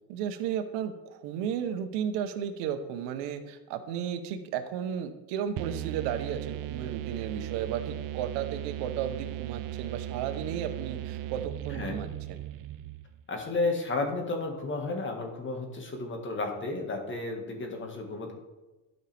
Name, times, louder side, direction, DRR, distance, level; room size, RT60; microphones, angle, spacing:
voice 1, 0.1-12.4, right 8 dB, 80° right, 8 dB, 1.0 m, -34 dB
sound 1, 5.6-13.2, right 13 dB, 55° right, 0.5 m, -37 dB
voice 2, 13.3-18.3, left 3 dB, 30° left, 3 dB, 1.8 m, -32 dB
12.0 x 5.3 x 3.5 m, 1.1 s
cardioid pair, 115°, 40 cm